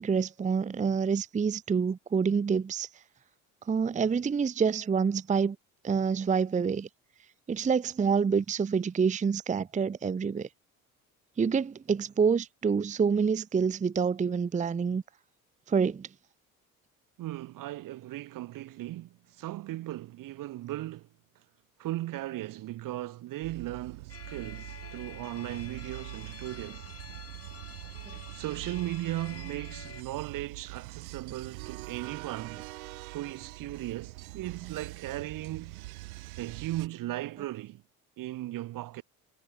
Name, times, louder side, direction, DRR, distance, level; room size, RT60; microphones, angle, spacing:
voice 1, 0.0-2.9 3.7-5.6 5.8-6.9 7.5-10.5 11.4-15.0 15.7-16.1, right 6 dB, 15° right, 0.7 m, -27 dB
voice 2, 17.2-21.1 21.8-26.9 28.3-32.6 33.1-35.8 36.4-37.8 38.2-39.0, right 15 dB, 50° right, 1.1 m, -37 dB
sound 1, 23.4-36.9, right 22 dB, 70° right, 1.7 m, -44 dB
sound 2, 24.1-30.0, left 6 dB, 35° left, 7.4 m, -48 dB
figure-of-eight pair, 55°, 43 cm